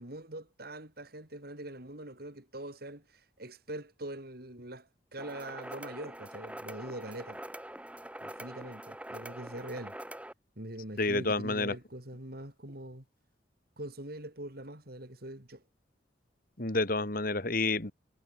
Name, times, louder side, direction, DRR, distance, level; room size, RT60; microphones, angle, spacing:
voice 1, 0.0-7.4 8.2-10.0 10.6-13.0 13.8-15.6, right 1 dB, 55° right, 4.3 m, -43 dB
sound 1, 5.2-10.3, right 1 dB, 5° right, 5.3 m, -44 dB
voice 2, 11.0-11.7 16.6-17.9, left 3 dB, 50° left, 2.8 m, -29 dB
head